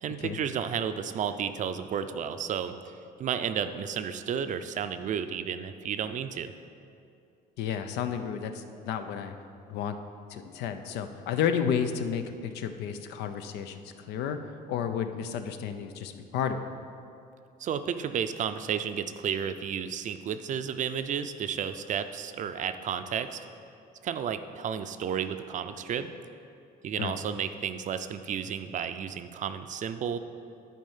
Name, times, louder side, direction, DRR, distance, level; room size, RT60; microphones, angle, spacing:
voice 1, 0.0-2.9 3.2-6.5 17.6-23.4 24.0-26.1 26.8-30.2, right 8 dB, 50° right, 10 dB, 0.5 m, -32 dB
voice 2, 7.6-9.3 9.7-10.0 10.3-14.4 14.7-16.6 27.0-27.2, left 8 dB, 85° left, 8 dB, 0.6 m, -32 dB
11.0 x 4.4 x 5.6 m, 2.5 s
cardioid pair, 110°, 17 cm